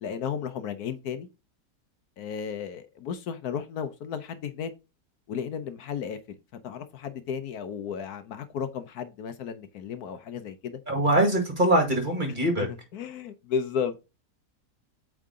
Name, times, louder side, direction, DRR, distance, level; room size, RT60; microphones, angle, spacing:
voice 1, 0.0-1.3 2.2-4.7 5.3-6.4 6.6-10.8 12.6-14.0, left 7 dB, 70° left, 1.2 m, -34 dB
voice 2, 10.9-12.7, right 1 dB, 30° right, 2.0 m, -23 dB
8.6 x 3.8 x 3.6 m
omnidirectional pair, 1.8 m